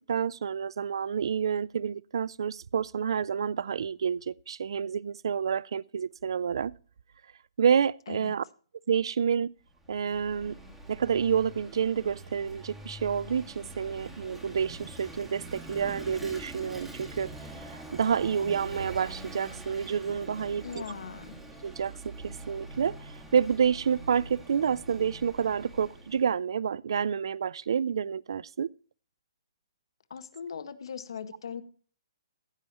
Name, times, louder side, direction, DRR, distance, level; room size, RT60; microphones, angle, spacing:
voice 1, 0.1-6.7 7.6-8.4 8.9-9.5 9.9-10.5 10.9-20.8 21.6-28.7, right 7 dB, 70° right, 0.4 m, -29 dB
Vehicle / Engine, 9.7-26.3, right 1 dB, 5° right, 1.8 m, -45 dB
voice 2, 20.6-21.4 30.1-31.6, left 7 dB, 70° left, 1.5 m, -39 dB
15.5 x 9.1 x 3.0 m
hypercardioid pair, 170°, 3 cm